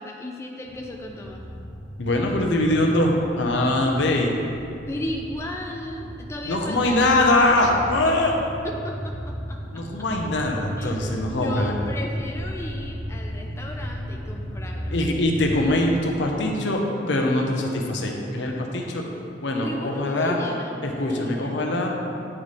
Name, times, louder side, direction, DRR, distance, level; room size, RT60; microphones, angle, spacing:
voice 1, 0.0-1.4 4.9-7.0 8.8-9.6 10.8-14.9 19.6-21.7, left 1 dB, 15° left, 1 dB, 0.4 m, -35 dB
sound 1, 0.7-15.5, equal, 60° right, 1.0 m, -35 dB
voice 2, 2.0-4.4 6.4-8.3 9.7-11.8 14.9-19.0 19.4-20.4 20.8-21.9, left 1 dB, 75° left, 1 dB, 0.7 m, -22 dB
8.7 x 3.2 x 4.1 m, 2.6 s
head